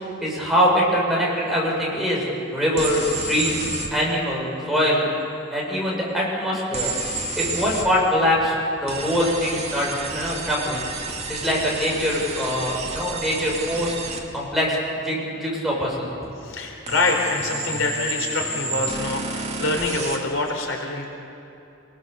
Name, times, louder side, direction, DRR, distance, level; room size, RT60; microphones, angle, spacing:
voice 1, 0.2-2.2 2.5-5.1 5.5-6.9 7.4-8.5 8.8-10.8 11.3-13.9 14.3-16.1, equal, ahead, -5 dB, 6.7 m, -23 dB
sound 1, 2.8-3.9 6.7-7.9 8.9-14.2 16.9-20.2, right 3 dB, 35° right, 2.7 m, -30 dB
voice 2, 16.4-21.1, left 2 dB, 80° left, 1 dB, 4.1 m, -25 dB
27.5 x 21.0 x 6.9 m, 2.8 s
head